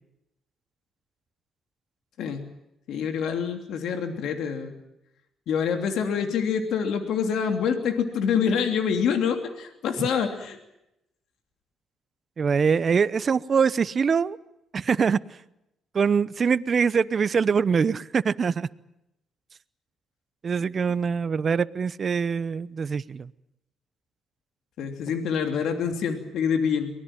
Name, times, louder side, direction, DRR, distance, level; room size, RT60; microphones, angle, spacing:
voice 1, 2.9-4.7 5.5-10.6 24.8-26.9, left 7 dB, 80° left, 6 dB, 3.0 m, -26 dB
voice 2, 12.4-14.4 14.7-15.2 15.9-18.7 20.4-23.3, right 6 dB, 45° right, 16 dB, 0.9 m, -23 dB
23.5 x 19.5 x 9.0 m, 0.85 s
cardioid pair, 90°, 0 cm